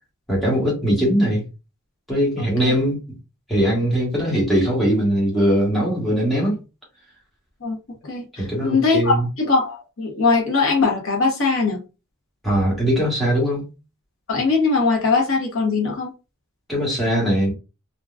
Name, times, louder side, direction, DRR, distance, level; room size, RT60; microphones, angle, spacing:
voice 1, 0.3-1.4 2.1-3.0 3.5-6.6 8.4-9.3 12.4-13.7 16.7-17.5, equal, ahead, 1.2 m, -20 dB
voice 2, 2.4-2.8 7.6-7.8 8.0-11.8 14.3-16.1, left 4 dB, 60° left, 0.9 m, -21 dB
3.5 x 2.2 x 2.3 m
head